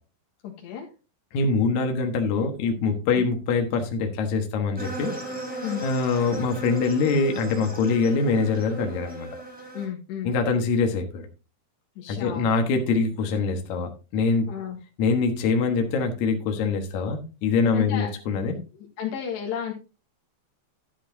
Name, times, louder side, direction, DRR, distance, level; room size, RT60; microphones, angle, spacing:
voice 1, 0.4-0.9 3.1-3.3 5.6-5.8 9.7-10.3 12.0-12.5 14.5-14.8 17.7-18.1 18.7-19.7, left 9 dB, 80° left, -1 dB, 3.6 m, -33 dB
voice 2, 1.3-5.1 5.8-9.3 10.2-11.2 12.1-14.5 15.0-18.6, left 4 dB, 60° left, 4 dB, 2.1 m, -24 dB
sound 1, 4.8-9.9, right 2 dB, ahead, 3.1 m, -37 dB
11.5 x 10.0 x 2.7 m, 0.31 s
omnidirectional pair, 4.9 m